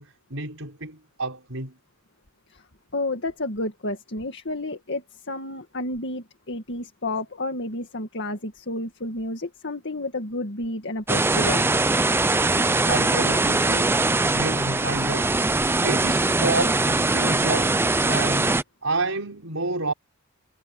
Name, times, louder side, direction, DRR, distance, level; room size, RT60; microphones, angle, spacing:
voice 1, 0.0-1.7 12.8-18.5 18.8-19.9, right 3 dB, 65° right, 5.9 m, -30 dB
voice 2, 2.9-11.9, left 2 dB, 55° left, 2.1 m, -31 dB
sound 1, 11.1-18.6, right 2 dB, 10° right, 0.5 m, -22 dB
head